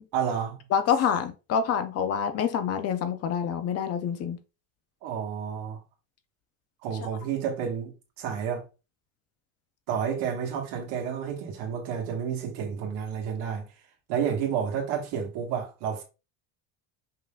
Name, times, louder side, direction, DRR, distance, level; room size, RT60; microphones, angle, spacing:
voice 1, 0.1-0.6 5.0-5.8 6.8-7.9 8.2-8.6 9.9-13.7 14.1-16.0, right 7 dB, 75° right, 1.7 m, -30 dB
voice 2, 0.7-4.4, left 7 dB, 40° left, 0.5 m, -26 dB
5.5 x 3.7 x 2.4 m
cardioid pair, 155°, 40 cm